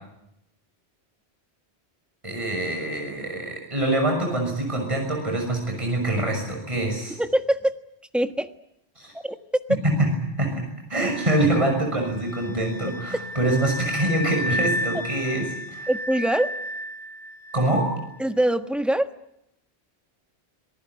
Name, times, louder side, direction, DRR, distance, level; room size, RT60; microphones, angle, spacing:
voice 1, 2.2-7.2 9.0-9.1 9.8-10.1 10.4-10.6 10.9-15.9 17.5-17.9, right 1 dB, 30° right, 2 dB, 6.5 m, -25 dB
voice 2, 7.1-7.7 8.1-8.5 9.1-9.4 15.9-16.5 18.2-19.1, right 1 dB, ahead, 7 dB, 1.3 m, -23 dB
sound 1, 11.0-17.8, left 1 dB, 20° left, 7.6 m, -33 dB
26.5 x 19.0 x 9.4 m, 0.81 s
omnidirectional pair, 1.1 m